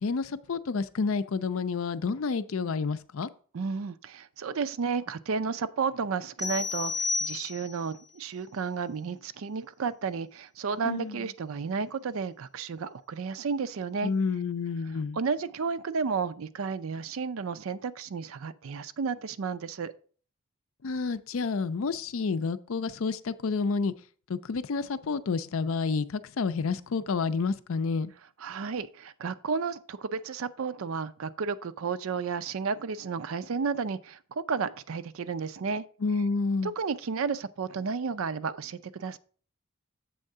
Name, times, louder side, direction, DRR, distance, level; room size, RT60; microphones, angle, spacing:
voice 1, 0.0-3.3 10.9-11.2 14.0-15.2 20.8-23.9 24.3-28.1 36.0-36.7, left 4 dB, 65° left, 0.5 m, -29 dB
voice 2, 3.5-14.1 15.1-19.9 28.4-35.8 36.6-39.2, right 5 dB, 65° right, 0.4 m, -32 dB
sound 1, 6.4-7.9, left 4 dB, ahead, 0.6 m, -31 dB
7.7 x 3.6 x 6.5 m
head